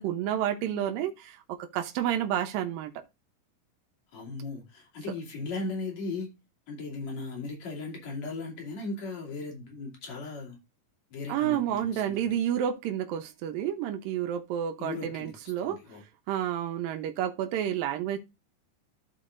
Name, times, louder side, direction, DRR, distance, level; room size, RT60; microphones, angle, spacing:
voice 1, 0.0-2.9 11.3-15.8 16.3-18.2, right 10 dB, 80° right, 2.6 m, -30 dB
voice 2, 4.1-6.3 6.7-10.6 11.1-12.4 14.8-16.0, left 3 dB, 50° left, 3.7 m, -37 dB
14.0 x 4.9 x 2.5 m
omnidirectional pair, 4.0 m